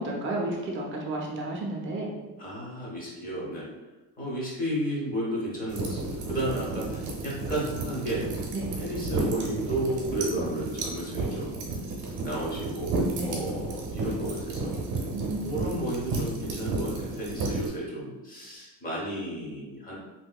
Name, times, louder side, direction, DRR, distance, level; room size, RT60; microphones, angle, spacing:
voice 1, 0.0-2.2 8.5-8.6 10.1-10.4 13.2-13.4 15.1-15.6, right 1 dB, 30° right, -1 dB, 0.5 m, -32 dB
voice 2, 2.4-3.7 4.2-8.3 8.7-11.6 12.2-14.8 15.4-20.0, right 1 dB, 20° left, -5 dB, 0.7 m, -33 dB
sound 1, 5.7-17.7, right 3 dB, 60° right, 0.8 m, -32 dB
3.1 x 2.8 x 2.3 m, 1.1 s
cardioid pair, 170°, 39 cm